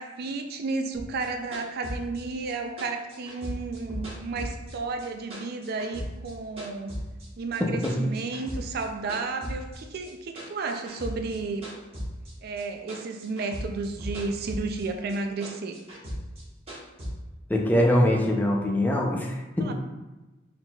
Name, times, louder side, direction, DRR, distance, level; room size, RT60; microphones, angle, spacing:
voice 1, 0.0-6.9 7.4-11.7 12.4-15.8 19.6-19.7, right 3 dB, 55° right, 5 dB, 0.4 m, -32 dB
sound 1, 0.9-5.1 5.3-7.3 7.5-8.8 9.1-12.6 12.9-14.8 15.1-17.1, equal, 30° right, 1.3 m, -37 dB
voice 2, 7.6-8.0 17.5-19.7, left 1 dB, 10° left, -1 dB, 0.5 m, -23 dB
4.3 x 3.9 x 2.3 m, 1.1 s
head